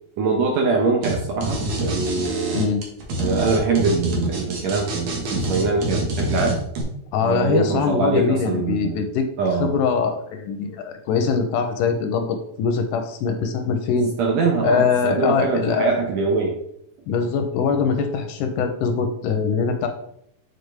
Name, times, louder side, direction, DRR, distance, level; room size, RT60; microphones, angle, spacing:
voice 1, 0.2-2.7 3.2-6.6 7.2-9.0 9.4-9.8 14.2-16.5, right 4 dB, 80° right, 1 dB, 1.5 m, -23 dB
sound 1, 1.0-1.1 1.4-6.8, right 1 dB, 60° right, 2.3 m, -26 dB
voice 2, 2.5-2.8 7.1-9.3 9.6-14.1 14.6-16.0 17.1-19.9, left 6 dB, 80° left, 6 dB, 2.0 m, -22 dB
8.0 x 4.5 x 3.3 m, 0.73 s
omnidirectional pair, 4.0 m